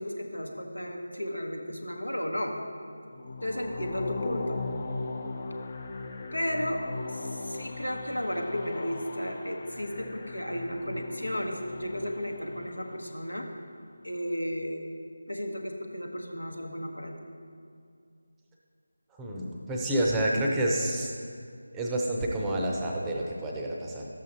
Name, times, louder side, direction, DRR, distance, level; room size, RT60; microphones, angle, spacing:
voice 1, 0.0-2.6 3.4-4.7 6.3-6.8 7.1-13.5 14.0-14.8 15.3-17.3, equal, 90° left, 2 dB, 1.1 m, -34 dB
sound 1, 3.1-13.3, left 3 dB, 30° left, 0.5 m, -38 dB
voice 2, 19.2-21.1 21.7-24.1, right 1 dB, 10° right, -2 dB, 0.7 m, -29 dB
12.0 x 7.5 x 2.9 m, 2.3 s
figure-of-eight pair, 160°, 0 cm